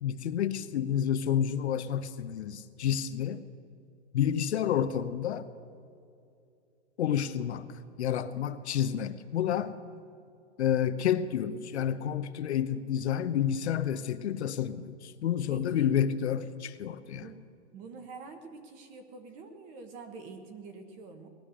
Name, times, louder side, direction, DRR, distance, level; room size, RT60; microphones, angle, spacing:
voice 1, 0.0-3.4 4.1-5.5 7.0-7.7 8.0-9.7 10.6-17.3, left 9 dB, 70° left, 11 dB, 0.9 m, -29 dB
voice 2, 15.5-15.9 17.1-17.5 17.7-21.3, right 4 dB, 20° right, 7 dB, 1.1 m, -46 dB
18.5 x 12.0 x 6.3 m, 2.5 s
hypercardioid pair, 165°, 35 cm